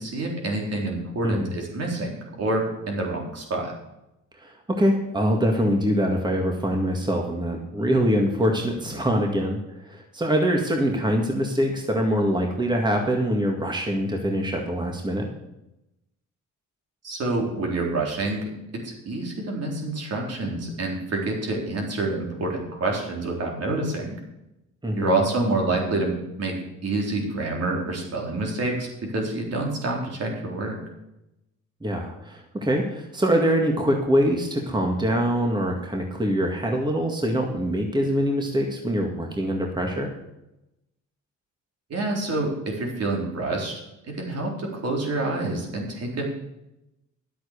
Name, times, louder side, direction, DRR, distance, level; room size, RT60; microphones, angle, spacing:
voice 1, 0.0-3.7 17.0-18.4 18.8-24.1 25.0-26.5 26.8-30.8 41.9-46.4, right 2 dB, 55° right, 0 dB, 3.9 m, -27 dB
voice 2, 4.4-15.3 24.8-25.1 31.8-40.1, equal, 15° right, 1 dB, 2.0 m, -24 dB
11.0 x 7.9 x 6.7 m, 0.89 s
cardioid pair, 90°, 30 cm